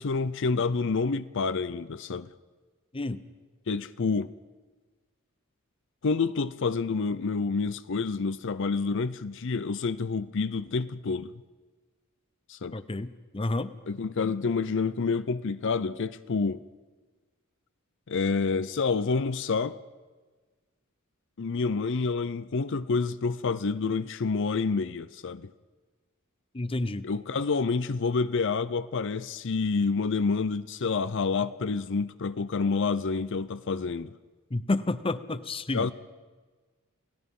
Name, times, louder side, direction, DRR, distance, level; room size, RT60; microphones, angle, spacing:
voice 1, 0.0-2.3 3.7-4.3 6.0-11.3 12.5-12.8 13.9-16.6 18.1-19.8 21.4-25.5 27.0-34.1 35.7-35.9, left 4 dB, 60° left, 0.6 m, -28 dB
voice 2, 12.7-13.8 26.5-27.1 34.5-35.9, left 2 dB, 25° left, 0.7 m, -30 dB
29.0 x 17.5 x 5.5 m
head